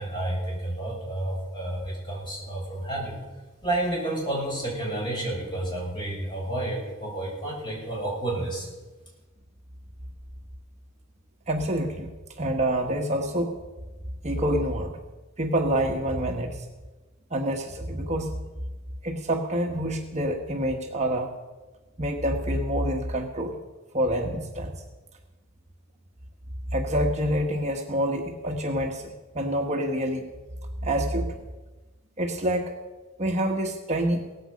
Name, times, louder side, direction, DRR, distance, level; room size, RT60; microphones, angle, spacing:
voice 1, 0.0-3.1 3.6-8.7, right 1 dB, 25° left, -3 dB, 6.9 m, -30 dB
voice 2, 11.5-12.1 12.4-13.5 14.2-15.0 15.4-16.6 17.3-18.4 19.0-21.3 22.0-23.6 23.9-24.7 26.7-30.3 30.8-31.4 32.2-32.7 33.2-34.2, right 1 dB, 35° right, 2 dB, 1.2 m, -27 dB
17.5 x 15.0 x 5.1 m, 1.2 s
head